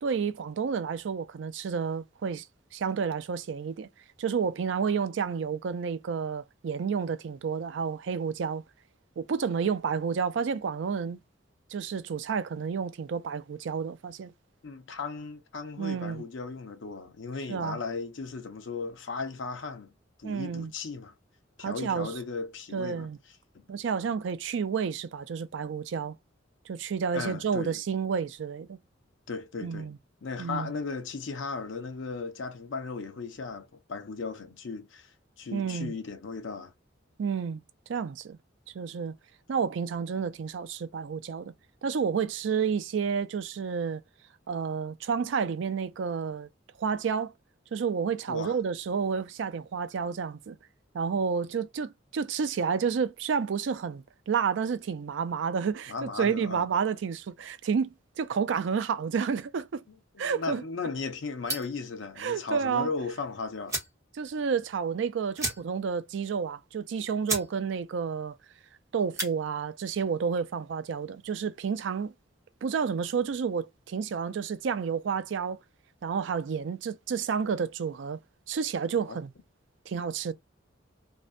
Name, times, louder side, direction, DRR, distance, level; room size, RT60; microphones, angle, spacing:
voice 1, 0.0-2.4 2.7-3.9 4.2-8.6 9.2-11.2 11.7-14.3 15.8-16.2 17.5-17.8 20.2-20.7 21.6-22.1 22.7-23.2 23.7-26.1 26.7-28.8 29.6-30.0 30.4-30.7 35.5-35.9 37.2-37.6 37.9-38.4 38.7-39.1 39.5-41.5 41.8-44.0 44.5-46.5 46.8-47.3 47.7-50.6 50.9-59.8 60.2-60.6 62.2-62.9 64.2-68.4 68.9-72.1 72.6-75.6 76.0-78.2 78.5-79.3 79.9-80.3, right 6 dB, 70° right, 0.4 m, -30 dB
voice 2, 14.6-19.9 20.2-21.1 21.6-23.1 27.1-27.7 29.3-29.9 30.2-35.1 35.4-36.7 48.3-48.6 55.9-56.7 59.9-63.8 79.1-79.2, left 4 dB, 75° left, 0.6 m, -36 dB
sound 1, 61.4-61.8 63.2-63.3 63.6-64.0 64.4-64.5 64.7-64.9 65.3-65.9 66.3-66.4 66.9-67.0 67.2-67.5 67.9-68.2 69.0-69.3, right 2 dB, 15° right, 0.9 m, -33 dB
2.6 x 2.1 x 2.5 m
head